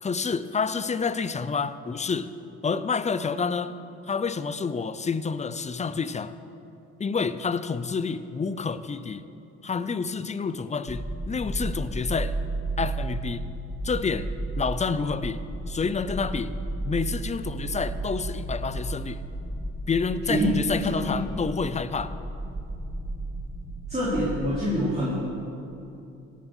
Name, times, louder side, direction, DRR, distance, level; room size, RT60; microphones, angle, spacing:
voice 1, 0.0-2.3 2.6-3.8 4.1-6.4 7.0-9.2 9.6-12.4 12.8-13.5 13.8-14.3 14.6-16.5 16.9-19.2 19.9-22.2, left 5 dB, 25° left, 14 dB, 0.6 m, -28 dB
sound 1, 10.9-24.6, right 2 dB, 5° left, 1.6 m, -33 dB
voice 2, 20.2-20.6 20.9-21.2 23.9-25.1, equal, 20° right, -8 dB, 3.6 m, -25 dB
16.5 x 7.4 x 6.3 m, 2.8 s
cardioid pair, 90°, 30 cm